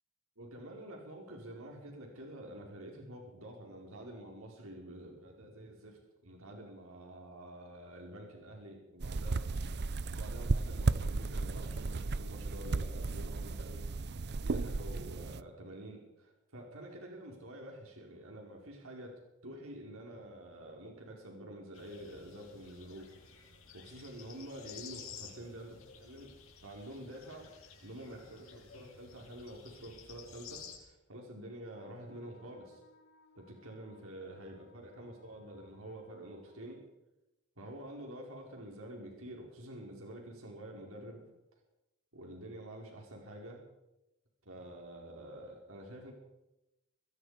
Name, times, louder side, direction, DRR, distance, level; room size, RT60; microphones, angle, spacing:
voice 1, 0.4-6.0 6.2-9.4 10.1-13.8 14.4-19.1 19.4-26.3 26.6-27.5 27.8-32.8 33.4-36.8 37.6-41.2 42.1-43.6 44.4-46.1, right 1 dB, 75° right, 0 dB, 5.1 m, -48 dB
sound 1, 9.0-15.4, right 3 dB, 50° right, 0.7 m, -34 dB
sound 2, 21.7-30.8, left 6 dB, 70° left, 6.8 m, -53 dB
Wind instrument woodwind instrument, 31.7-36.9, left 2 dB, 55° left, 2.4 m, -65 dB
24.5 x 20.5 x 5.2 m, 0.95 s
head